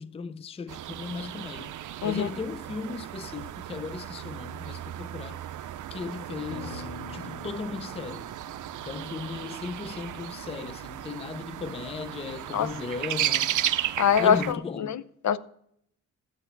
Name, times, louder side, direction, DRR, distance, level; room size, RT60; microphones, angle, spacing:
voice 1, 0.0-1.7 2.0-5.4 5.9-8.3 8.8-13.6 14.2-15.0, left 4 dB, 20° left, 0.4 m, -36 dB
sound 1, 0.7-14.5, right 12 dB, 70° right, 0.5 m, -35 dB
sound 2, 6.5-11.0, left 6 dB, 80° left, 1.1 m, -46 dB
voice 2, 14.0-15.4, left 8 dB, 65° left, 0.6 m, -24 dB
12.5 x 8.4 x 4.5 m
cardioid pair, 105°, 31 cm